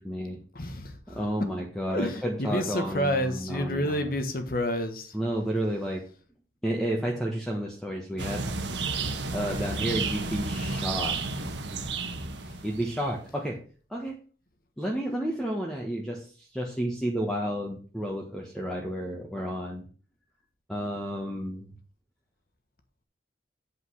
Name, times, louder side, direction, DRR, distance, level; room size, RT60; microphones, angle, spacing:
voice 1, 0.0-0.4 1.1-4.1 5.1-6.0 6.6-8.5 9.3-11.5 12.6-13.6 13.9-14.1 14.8-19.9 20.7-21.7, equal, 5° left, -2 dB, 1.4 m, -31 dB
voice 2, 0.5-0.9 1.9-5.1, equal, 55° left, 7 dB, 1.4 m, -29 dB
sound 1, 8.2-13.1, right 3 dB, 85° right, 1.3 m, -32 dB
8.4 x 5.3 x 6.3 m, 0.39 s
head